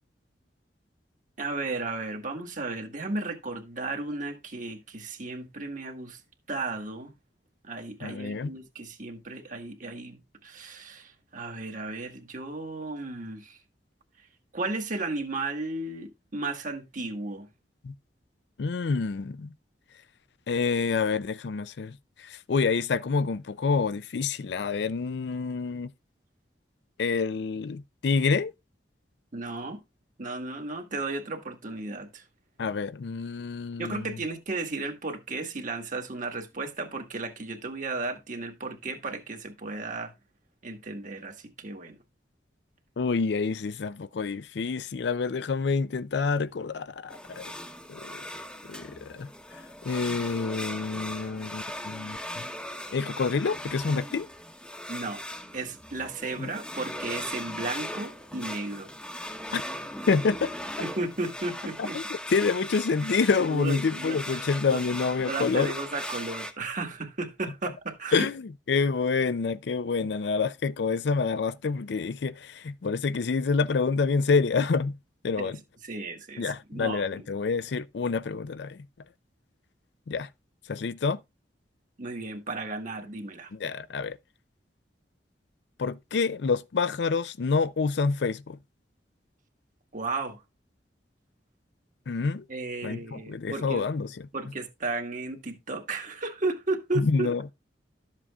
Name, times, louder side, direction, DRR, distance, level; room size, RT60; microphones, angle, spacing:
voice 1, 1.4-6.2 6.5-7.1 7.6-13.6 14.5-17.5 29.3-29.8 30.2-32.2 33.8-40.1 40.6-42.0 54.9-55.2 55.5-58.9 60.8-62.0 63.5-64.8 65.2-68.3 75.4-75.5 75.8-77.2 82.0-83.5 89.9-90.4 92.5-93.8 94.3-97.3, right 3 dB, 45° right, 1.6 m, -34 dB
voice 2, 8.0-8.5 17.8-17.9 18.6-19.5 20.5-25.9 27.0-28.5 32.6-34.2 43.0-47.4 47.9-48.2 48.7-49.3 49.8-52.4 52.9-54.3 56.4-56.5 59.5-59.6 60.1-60.5 61.8-65.7 68.1-74.9 75.2-75.6 76.4-78.8 80.1-80.3 80.7-81.2 83.5-84.2 85.8-88.6 92.1-92.4 92.8-94.1 97.0-97.4, left 4 dB, 70° left, 0.5 m, -27 dB
sound 1, 47.1-66.5, left 1 dB, 5° left, 0.9 m, -39 dB
12.5 x 7.4 x 2.4 m
head